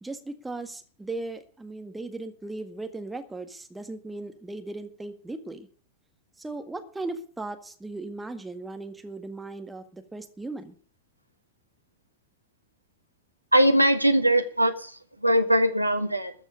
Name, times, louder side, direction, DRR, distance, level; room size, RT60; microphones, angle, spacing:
voice 1, 0.0-5.7 6.4-10.8, right 2 dB, 10° right, 7 dB, 1.7 m, -37 dB
voice 2, 13.5-16.3, right 1 dB, 90° right, 9 dB, 1.4 m, -21 dB
13.5 x 7.6 x 8.3 m, 0.43 s
figure-of-eight pair, 90°, 0 cm